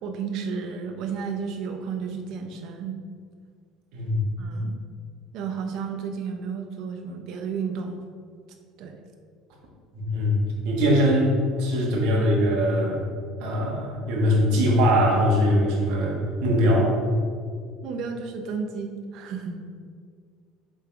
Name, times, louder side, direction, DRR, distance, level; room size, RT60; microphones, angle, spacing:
voice 1, 0.0-3.0 4.4-4.8 5.3-8.0 8.8-9.0 17.8-19.6, right 5 dB, 50° right, 5 dB, 0.7 m, -32 dB
voice 2, 9.9-10.4 10.6-13.0 13.4-16.9, equal, 65° right, -3 dB, 1.8 m, -21 dB
7.0 x 3.9 x 4.7 m, 2.1 s
cardioid pair, 175°, 0 cm